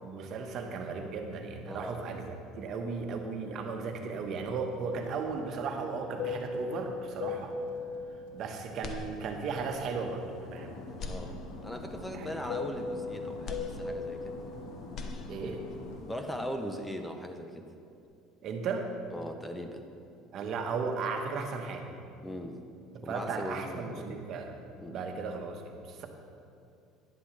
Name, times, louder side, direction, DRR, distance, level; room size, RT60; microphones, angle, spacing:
voice 1, 0.0-7.5 8.3-10.8 12.1-12.3 15.3-15.6 18.4-18.9 20.3-21.9 22.9-24.6 24.9-26.1, right 4 dB, 55° right, 4 dB, 1.2 m, -36 dB
voice 2, 1.7-2.2 11.1-14.4 16.1-17.7 19.1-19.9 22.2-22.6 23.0-24.2 24.8-25.0, equal, 5° left, 6 dB, 0.7 m, -39 dB
Fixed-wing aircraft airplane, 4.6-10.0 10.3-16.1, left 4 dB, 85° left, 1.2 m, -39 dB
sound 1, 8.8-9.7 10.1-10.2 10.9-11.9 13.4-14.5 14.8-15.8, left 3 dB, 50° left, 0.9 m, -42 dB
11.0 x 11.0 x 3.3 m, 2.5 s
supercardioid pair, 100°, 0 cm